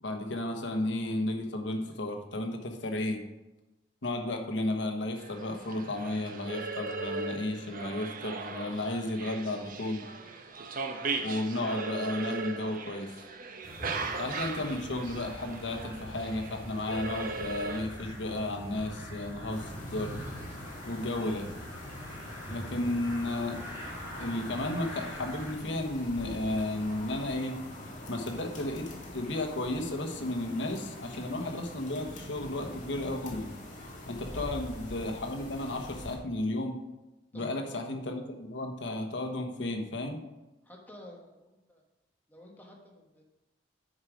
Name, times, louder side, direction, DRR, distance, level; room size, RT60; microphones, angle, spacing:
voice 1, 0.0-3.2 4.0-10.0 11.2-13.1 14.2-20.1 20.9-21.5 22.5-23.6 24.2-27.6 28.1-33.5 34.1-36.8 37.3-40.2, left 1 dB, 75° left, 4 dB, 1.1 m, -33 dB
sound 1, 5.2-17.8, right 3 dB, 50° right, 0.8 m, -38 dB
sound 2, 13.6-25.5, equal, 15° right, 2.8 m, -44 dB
sound 3, 19.5-36.2, left 1 dB, 45° left, 1.8 m, -44 dB
voice 2, 37.3-37.8 40.6-41.8 42.3-43.2, left 1 dB, 10° left, -1 dB, 1.4 m, -51 dB
9.6 x 4.7 x 5.0 m, 1.0 s
head